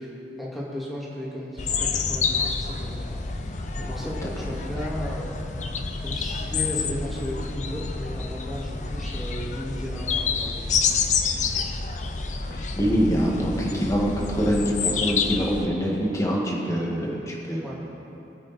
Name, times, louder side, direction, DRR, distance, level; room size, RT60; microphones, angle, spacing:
voice 1, 0.0-5.4 6.0-10.8 17.6-17.7, equal, ahead, -7 dB, 2.5 m, -35 dB
sound 1, 1.6-15.7, left 5 dB, 45° left, 0.7 m, -28 dB
voice 2, 12.5-17.6, equal, 20° left, -3 dB, 2.0 m, -25 dB
22.0 x 8.7 x 4.4 m, 3.0 s
head